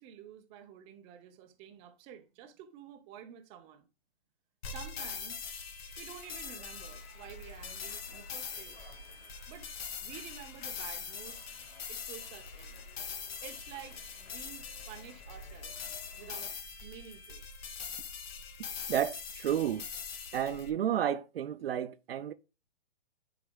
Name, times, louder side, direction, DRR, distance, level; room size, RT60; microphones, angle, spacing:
voice 1, 0.0-3.9 4.6-5.4 6.0-8.9 9.5-9.7 10.0-11.4 11.9-12.8 13.4-15.9 16.2-17.4, right 9 dB, 15° right, 0.7 m, -50 dB
sound 1, 4.6-20.7, left 6 dB, 60° left, 1.8 m, -43 dB
Subway metro underground, 6.2-16.5, left 4 dB, 25° left, 2.0 m, -58 dB
voice 2, 18.9-19.8 20.3-22.3, right 10 dB, 60° right, 0.6 m, -31 dB
10.5 x 4.9 x 2.3 m
hypercardioid pair, 155°, 34 cm